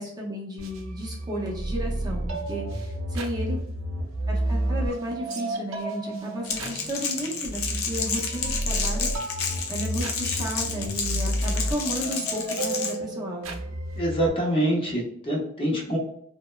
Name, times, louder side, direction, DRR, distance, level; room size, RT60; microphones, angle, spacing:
voice 1, 0.0-3.6 4.3-9.1 9.7-13.5, equal, 20° right, -3 dB, 0.5 m, -33 dB
sound 1, 0.6-14.3, right 1 dB, 85° right, 0.5 m, -31 dB
Crackle, 6.4-12.9, left 5 dB, 80° left, 0.5 m, -30 dB
voice 2, 14.0-16.0, right 1 dB, 25° left, -2 dB, 0.6 m, -25 dB
2.9 x 2.0 x 2.2 m, 0.71 s
head